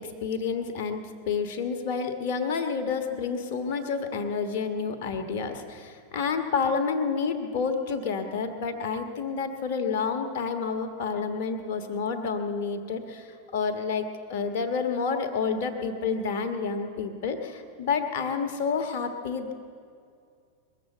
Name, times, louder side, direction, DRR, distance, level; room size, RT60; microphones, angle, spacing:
voice 1, 0.0-19.5, left 5 dB, 50° left, 7 dB, 1.4 m, -29 dB
21.0 x 7.8 x 8.4 m, 2.3 s
figure-of-eight pair, 90°, 0 cm